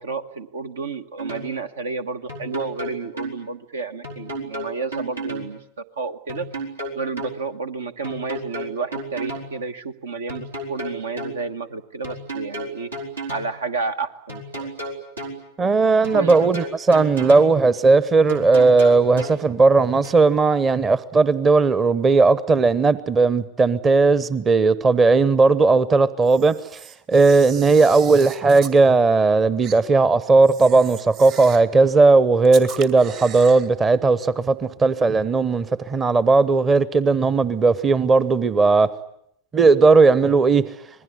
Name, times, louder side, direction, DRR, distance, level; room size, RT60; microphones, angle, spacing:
voice 1, 0.0-5.6 6.0-6.5 6.9-12.9 13.3-14.7 16.1-16.3, right 4 dB, 65° right, 1.2 m, -31 dB
sound 1, 1.2-1.5 2.3-3.4 4.0-5.5 6.3-7.4 8.0-9.5 10.3-11.4 12.0-13.5 14.3-15.4 16.0-17.5 18.3-19.4 20.0-20.1, right 1 dB, 80° right, 4.3 m, -32 dB
voice 2, 15.6-38.9 39.5-40.7, right 3 dB, 20° right, 0.9 m, -17 dB
Camera, 26.2-28.8 29.6-29.8 30.4-31.7 32.4-33.7, right 8 dB, 45° right, 2.2 m, -39 dB
26.5 x 20.5 x 9.4 m
figure-of-eight pair, 90°, 0 cm